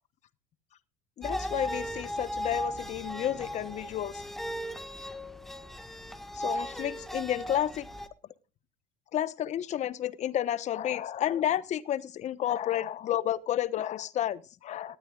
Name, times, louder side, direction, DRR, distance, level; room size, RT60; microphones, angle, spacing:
voice 1, 1.2-4.2 6.3-7.9 9.1-15.0, left 11 dB, 45° left, 1.1 m, -31 dB
sound 1, 1.2-8.1, equal, ahead, 1.5 m, -37 dB
19.0 x 13.0 x 2.4 m
supercardioid pair, 110°, 17 cm